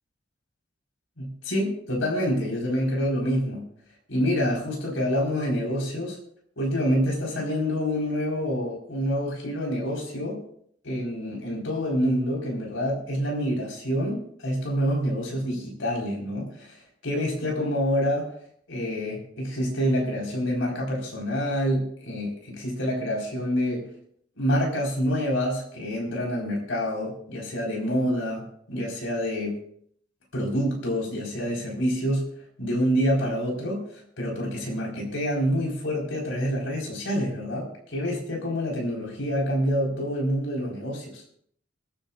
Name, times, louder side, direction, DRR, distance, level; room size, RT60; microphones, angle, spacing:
voice 1, 1.2-3.6 4.1-6.2 6.6-10.4 10.8-16.8 17.0-18.3 18.7-23.9 24.4-28.4 28.7-29.6 30.3-32.3 32.6-33.8 34.2-41.2, equal, 90° left, -2 dB, 4.3 m, -27 dB
28.0 x 10.0 x 2.4 m, 0.64 s
head